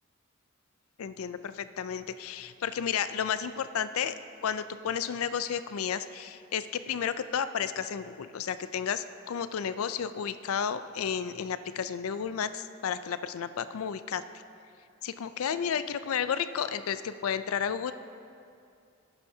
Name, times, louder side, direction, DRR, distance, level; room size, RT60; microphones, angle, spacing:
voice 1, 1.0-4.1 4.4-14.2 15.0-17.9, left 7 dB, 80° left, 12 dB, 0.4 m, -32 dB
17.0 x 9.0 x 2.7 m, 2.5 s
head